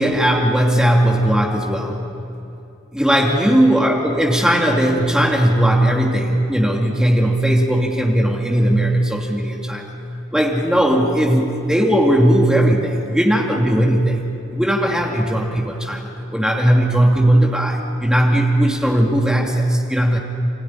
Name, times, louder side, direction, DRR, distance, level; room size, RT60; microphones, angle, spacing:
voice 1, 0.0-2.1 2.9-9.9 10.3-14.2 14.5-20.2, right 1 dB, 5° right, -1 dB, 2.5 m, -17 dB
30.0 x 15.5 x 10.0 m, 2.7 s
head